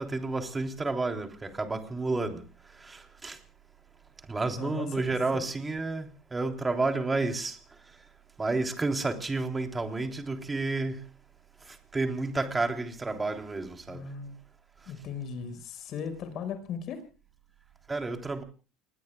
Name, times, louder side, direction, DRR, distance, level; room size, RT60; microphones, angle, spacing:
voice 1, 0.0-2.4 2.9-3.4 4.3-6.1 6.3-7.6 8.4-11.0 11.9-14.0 17.9-18.4, right 3 dB, 20° right, 3.4 m, -30 dB
voice 2, 4.6-4.9 13.9-14.4 14.9-17.1, left 6 dB, 55° left, 5.4 m, -37 dB
29.0 x 21.0 x 2.3 m
supercardioid pair, 85°, 0 cm